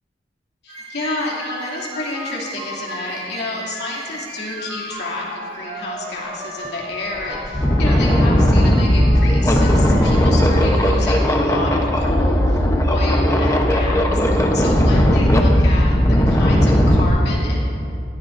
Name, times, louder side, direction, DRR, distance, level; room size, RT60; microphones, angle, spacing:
voice 1, 0.6-14.2 14.5-17.6, left 2 dB, 65° left, -5 dB, 2.7 m, -30 dB
sound 1, 0.7-10.9, equal, 40° right, 2.2 m, -34 dB
sound 2, 6.7-6.8 7.2-17.1, equal, 15° left, 0.8 m, -16 dB
18.0 x 13.5 x 2.6 m, 2.6 s
head